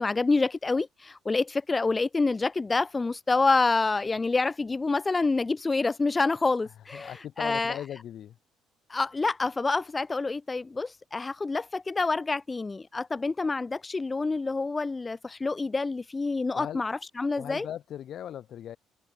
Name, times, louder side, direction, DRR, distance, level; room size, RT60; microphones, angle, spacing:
voice 1, 0.0-7.8 8.9-17.7, left 3 dB, 25° left, 0.4 m, -27 dB
voice 2, 6.9-8.4 16.5-16.8 17.4-18.8, left 10 dB, 60° left, 3.7 m, -38 dB
supercardioid pair, 80°, 0 cm